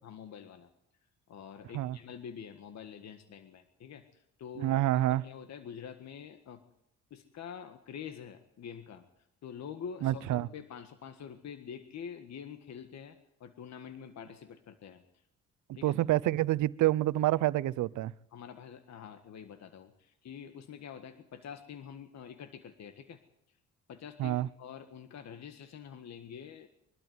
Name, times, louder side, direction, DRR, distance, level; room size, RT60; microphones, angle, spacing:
voice 1, 0.0-0.7 1.3-4.7 5.1-6.6 7.1-9.0 9.4-15.0 15.7-16.0 18.3-23.2 23.9-26.7, left 7 dB, 60° left, 9 dB, 1.7 m, -46 dB
voice 2, 4.6-5.2 10.0-10.5 15.8-18.1 24.2-24.5, right 15 dB, 75° right, 20 dB, 0.7 m, -27 dB
22.0 x 12.5 x 9.5 m, 0.77 s
cardioid pair, 90°, 30 cm